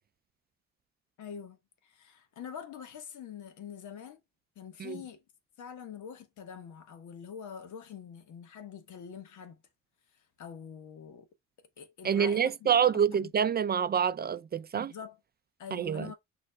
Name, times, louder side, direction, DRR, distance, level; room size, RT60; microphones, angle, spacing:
voice 1, 1.2-4.2 4.5-5.2 5.6-9.6 10.4-11.3 11.8-13.3 14.7-15.2 15.6-16.1, left 7 dB, 75° left, 1.3 m, -45 dB
voice 2, 12.0-14.9 15.7-16.1, right 7 dB, 35° right, 0.4 m, -27 dB
6.3 x 3.2 x 2.2 m
cardioid pair, 90°, 30 cm